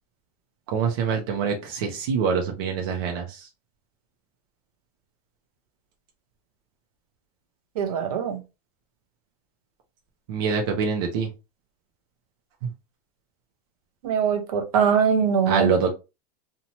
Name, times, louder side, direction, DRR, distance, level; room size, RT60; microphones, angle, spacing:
voice 1, 0.7-3.5 10.3-11.3 15.5-15.9, right 5 dB, 35° right, 0.5 m, -25 dB
voice 2, 7.8-8.4 14.0-15.7, right 7 dB, 60° right, 0.8 m, -22 dB
2.8 x 2.1 x 2.8 m
supercardioid pair, 180°, 21 cm